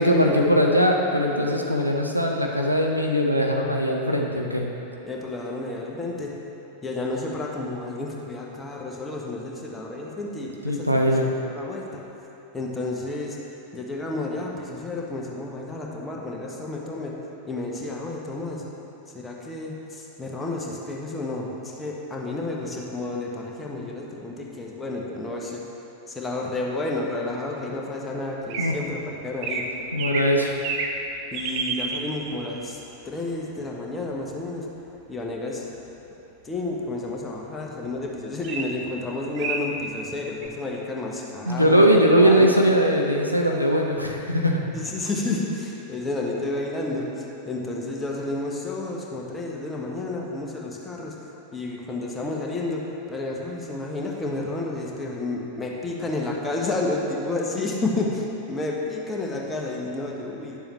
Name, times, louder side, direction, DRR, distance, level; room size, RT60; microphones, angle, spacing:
voice 1, 0.0-4.7 10.6-11.3 28.6-28.7 29.9-30.5 41.5-44.6, equal, 90° right, 0 dB, 0.7 m, -20 dB
voice 2, 5.0-6.3 6.8-10.9 11.4-12.0 12.5-13.4 13.7-17.1 17.5-18.6 19.1-25.6 26.1-29.7 31.3-32.8 33.0-34.6 35.1-35.6 36.4-41.9 42.2-42.6 44.7-51.1 51.5-52.8 53.1-60.6, left 2 dB, 15° left, -2 dB, 1.1 m, -31 dB
sound 1, 28.5-28.7 29.4-29.6 30.0-30.4 30.6-31.0 31.3-32.0 38.4-38.6 39.1-39.2 39.4-39.6 40.4-40.5, right 5 dB, 45° right, 0.6 m, -28 dB
10.5 x 6.9 x 3.1 m, 2.9 s
figure-of-eight pair, 90°, 0 cm